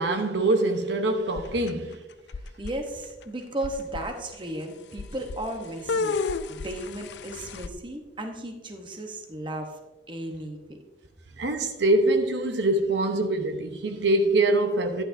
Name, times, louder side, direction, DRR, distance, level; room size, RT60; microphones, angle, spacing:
voice 1, 0.0-2.0 11.4-15.0, right 2 dB, 70° right, 0.9 m, -24 dB
sound 1, 1.4-1.9 2.3-2.7 3.2-3.3 3.6-4.0 5.0-5.4 5.9-7.7, left 4 dB, 70° left, 0.4 m, -31 dB
voice 2, 2.6-6.1 6.5-9.8 10.1-10.8, right 1 dB, 25° right, 1.0 m, -35 dB
12.0 x 10.5 x 2.7 m
head